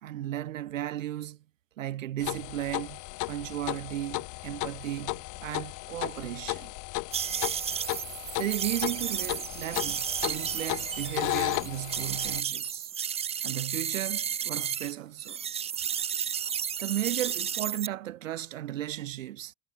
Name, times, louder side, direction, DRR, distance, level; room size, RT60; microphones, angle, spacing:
voice 1, 0.0-1.4 1.8-3.0 3.3-6.7 8.4-12.9 13.4-15.4 16.8-19.5, right 13 dB, 85° right, 2.0 m, -35 dB
sound 1, 2.2-12.4, left 27 dB, 55° left, 0.6 m, -35 dB
sound 2, 7.1-14.9 15.2-17.9, right 8 dB, 15° right, 0.4 m, -33 dB
hypercardioid pair, 85°, 38 cm